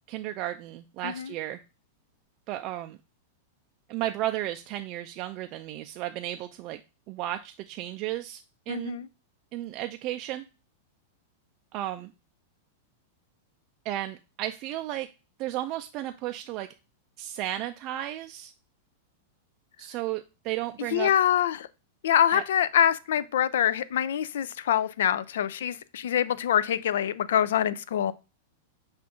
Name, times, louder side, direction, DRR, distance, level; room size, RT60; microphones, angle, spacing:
voice 1, 0.1-1.6 2.5-3.0 3.9-6.8 7.1-9.0 9.5-10.4 11.7-12.1 13.9-15.1 15.4-16.7 17.2-18.5 19.8-21.1 22.3-22.4, right 14 dB, 45° right, 0.3 m, -34 dB
voice 2, 8.7-9.1 20.9-21.7 22.0-28.1, left 10 dB, 75° left, 0.3 m, -25 dB
6.1 x 2.5 x 3.5 m
hypercardioid pair, 110°, 0 cm